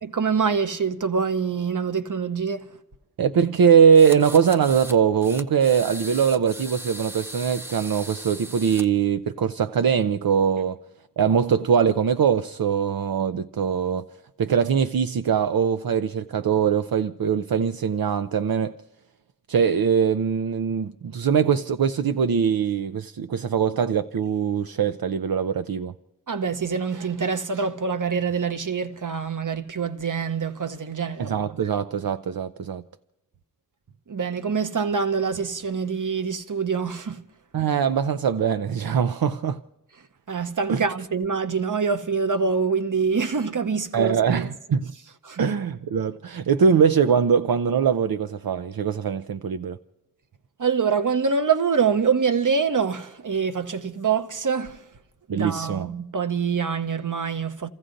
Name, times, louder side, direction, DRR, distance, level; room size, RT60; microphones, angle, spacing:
voice 1, 0.0-2.7 26.3-31.6 34.1-37.2 40.3-44.4 45.2-45.4 50.6-54.8 55.3-57.7, right 5 dB, 60° right, 0.8 m, -25 dB
voice 2, 3.2-10.8 11.2-14.0 14.4-18.7 19.5-25.9 31.2-32.8 37.5-39.6 40.7-40.8 43.9-44.9 45.4-49.8 55.3-55.9, right 7 dB, 80° right, 0.5 m, -22 dB
sound 1, 3.9-5.0 5.2-8.8, right 1 dB, 5° right, 0.7 m, -38 dB
30.0 x 15.0 x 2.6 m
wide cardioid pair, 45°, 35 cm